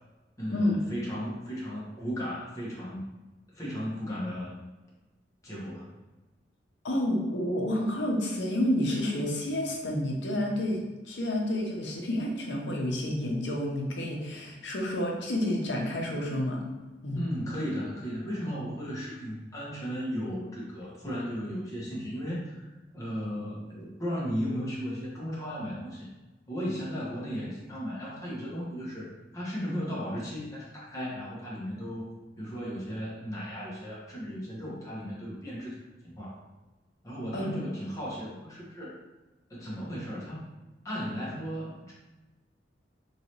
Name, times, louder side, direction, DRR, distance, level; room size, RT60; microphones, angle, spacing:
voice 1, 0.4-3.0 3.5-4.6 5.4-6.0 17.1-26.1 26.5-32.1 32.4-35.7 36.0-36.4 37.0-39.0 39.5-40.5 40.8-41.9, equal, 20° left, -7 dB, 1.0 m, -35 dB
voice 2, 6.8-10.8 11.1-16.6 17.0-17.2 37.3-37.6, left 1 dB, 80° left, 0 dB, 0.7 m, -29 dB
3.1 x 2.9 x 2.9 m, 1.2 s
head